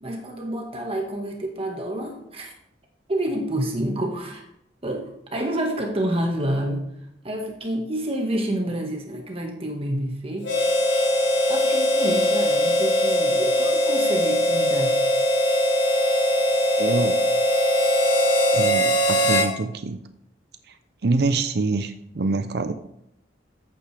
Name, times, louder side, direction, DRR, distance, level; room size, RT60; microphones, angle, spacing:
voice 1, 0.0-2.5 3.1-4.4 4.8-6.9 7.2-10.5 11.5-15.0, right 1 dB, 35° right, 2 dB, 1.7 m, -28 dB
Harmonica, 10.4-19.5, equal, 80° left, 2.3 m, -21 dB
voice 2, 16.8-17.2 18.5-20.0 21.0-22.7, right 3 dB, 65° right, 10 dB, 0.6 m, -25 dB
13.5 x 8.8 x 3.4 m, 0.78 s
head